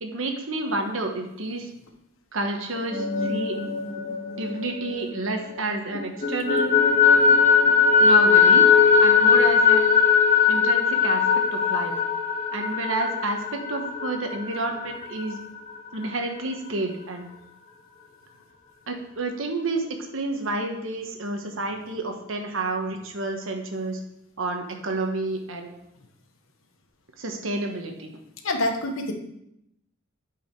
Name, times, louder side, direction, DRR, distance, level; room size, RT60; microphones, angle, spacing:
voice 1, 0.0-1.7 2.3-3.6 4.4-6.7 8.0-9.9 10.5-11.9 12.5-15.4 15.9-17.3 18.9-19.9 20.1-24.0 24.4-25.8 27.2-28.1, right 2 dB, 75° right, 4 dB, 1.2 m, -30 dB
sound 1, 2.7-5.6 5.9-15.4, left 6 dB, 35° left, 2.0 m, -20 dB
voice 2, 28.4-29.1, left 1 dB, 90° left, 5 dB, 1.1 m, -26 dB
8.9 x 4.9 x 4.7 m, 0.80 s
head